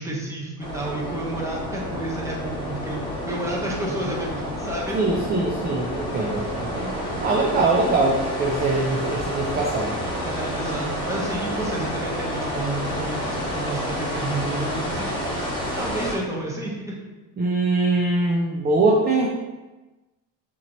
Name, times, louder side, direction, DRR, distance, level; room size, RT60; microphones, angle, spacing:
voice 1, 0.0-3.0 3.3-5.0 10.2-15.2 15.8-16.9, right 1 dB, 5° right, -3 dB, 1.0 m, -30 dB
sound 1, 0.6-16.1, equal, 10° left, 1.2 m, -29 dB
voice 2, 4.9-10.0 17.4-19.3, right 2 dB, 20° right, -1 dB, 0.4 m, -22 dB
5.9 x 3.0 x 3.0 m, 1.2 s
cardioid pair, 110°, 50 cm